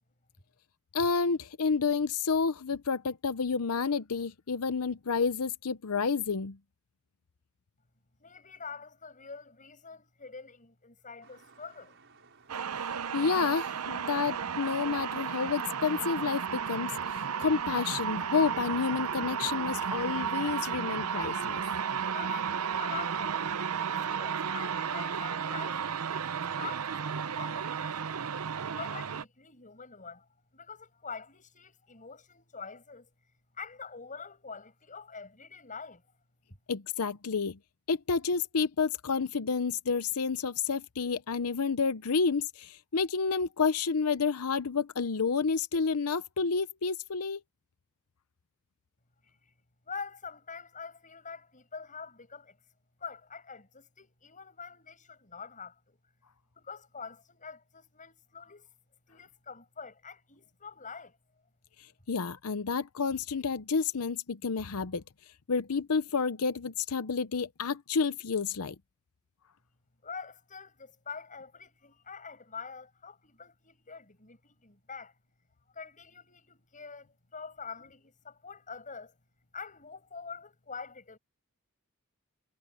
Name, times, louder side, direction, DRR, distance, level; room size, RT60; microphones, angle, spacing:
voice 1, 0.9-6.6 13.1-21.6 36.7-37.6 37.9-47.4 61.8-65.0 65.5-68.8, left 5 dB, 80° left, 0.7 m, -30 dB
voice 2, 8.2-12.0 22.1-28.1 28.8-33.1 33.5-36.0 49.9-52.6 53.0-56.0 56.5-58.7 59.1-61.2 70.0-75.2 75.7-79.1 79.5-81.2, left 5 dB, 35° left, 7.0 m, -45 dB
sound 1, 11.2-22.1, right 5 dB, 60° right, 5.0 m, -59 dB
sound 2, 12.5-29.2, right 7 dB, 85° right, 0.7 m, -33 dB
head